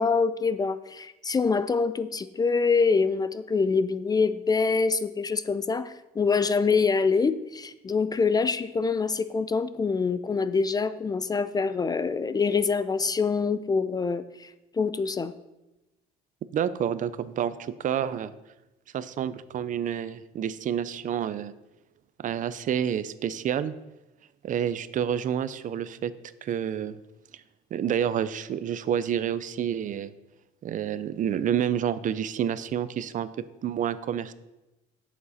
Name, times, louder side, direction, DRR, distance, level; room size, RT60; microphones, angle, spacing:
voice 1, 0.0-15.3, left 4 dB, 25° left, 14 dB, 0.4 m, -25 dB
voice 2, 16.5-18.3 18.9-21.5 22.2-23.7 24.4-26.1 26.4-27.0 27.7-30.1 30.6-33.3 33.6-34.3, right 9 dB, 50° right, 15 dB, 0.5 m, -29 dB
11.0 x 7.2 x 4.2 m, 0.98 s
cardioid pair, 110°, 17 cm